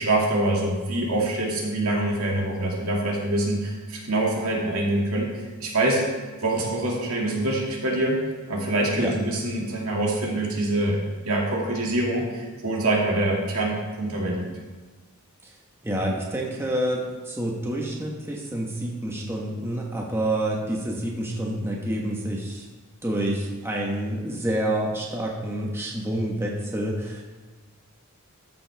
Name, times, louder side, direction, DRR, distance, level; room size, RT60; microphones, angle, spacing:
voice 1, 0.0-6.0 6.4-8.2 8.5-11.0 11.2-14.4, right 1 dB, 80° right, -2 dB, 2.3 m, -25 dB
voice 2, 15.8-22.7 23.0-27.2, right 1 dB, 10° right, -2 dB, 1.2 m, -28 dB
13.5 x 7.6 x 3.4 m, 1.3 s
head